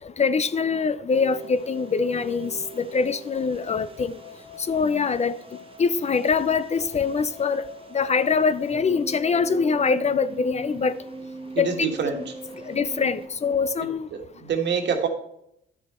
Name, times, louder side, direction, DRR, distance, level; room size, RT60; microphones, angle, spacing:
voice 1, 0.2-4.2 4.7-5.4 5.8-7.6 7.9-11.0 11.6-11.7 12.7-14.1, left 5 dB, 35° left, 0.6 m, -23 dB
sound 1, 1.1-13.3, right 1 dB, 30° right, 1.2 m, -42 dB
voice 2, 11.6-12.7 13.8-15.1, right 6 dB, 60° right, 1.8 m, -27 dB
11.0 x 6.2 x 4.3 m
supercardioid pair, 75°, 20 cm